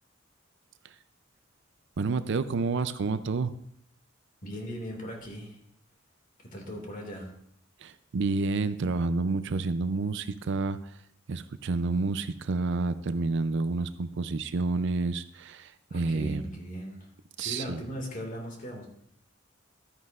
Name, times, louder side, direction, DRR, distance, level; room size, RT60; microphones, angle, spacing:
voice 1, 2.0-3.5 7.8-11.0 11.3-16.5 17.4-17.8, right 3 dB, 65° right, 13 dB, 0.5 m, -29 dB
voice 2, 4.4-5.6 6.4-7.3 15.9-17.1 17.4-18.9, equal, 45° left, 1 dB, 2.1 m, -38 dB
13.0 x 9.4 x 2.5 m, 0.71 s
head